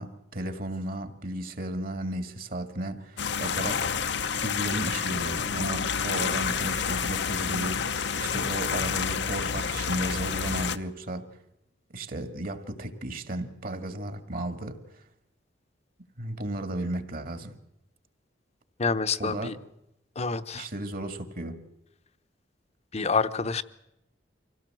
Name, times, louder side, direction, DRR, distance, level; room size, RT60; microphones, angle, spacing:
voice 1, 0.0-3.9 4.4-11.3 11.9-14.8 16.2-17.5 19.2-19.5 20.5-21.6, right 1 dB, 50° right, 2.0 m, -34 dB
sound 1, 3.2-10.8, left 6 dB, 65° left, 0.9 m, -29 dB
voice 2, 18.8-19.6 20.2-20.7 22.9-23.6, left 4 dB, 35° left, 0.9 m, -27 dB
25.5 x 17.0 x 7.7 m
head